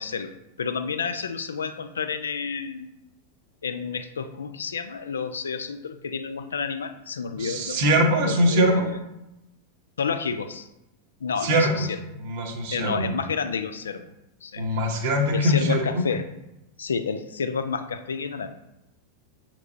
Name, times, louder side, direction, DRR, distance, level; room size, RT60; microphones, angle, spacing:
voice 1, 0.0-2.9 3.6-7.8 8.2-9.0 10.0-10.7 11.2-12.0 12.7-14.1 14.4-14.6 15.3-16.2 16.8-18.5, left 5 dB, 70° left, 9 dB, 0.3 m, -30 dB
voice 2, 7.4-8.9 11.4-11.9 12.2-13.1 14.6-16.0, equal, 50° right, 3 dB, 0.8 m, -22 dB
6.6 x 2.9 x 2.6 m, 0.89 s
figure-of-eight pair, 90°, 0 cm